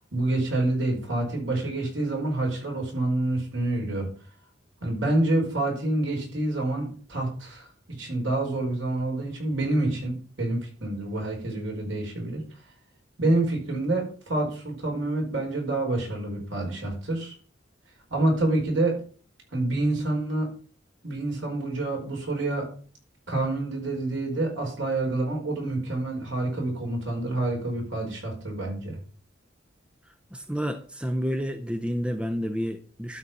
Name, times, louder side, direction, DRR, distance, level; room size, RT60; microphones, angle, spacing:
voice 1, 0.1-4.1 4.8-7.7 8.0-12.4 13.2-17.3 18.1-19.0 19.5-20.5 21.0-22.7 23.3-29.0, right 2 dB, 65° right, -1 dB, 4.9 m, -27 dB
voice 2, 30.3-33.2, equal, 5° right, 8 dB, 0.6 m, -30 dB
12.0 x 4.1 x 6.8 m, 0.42 s
head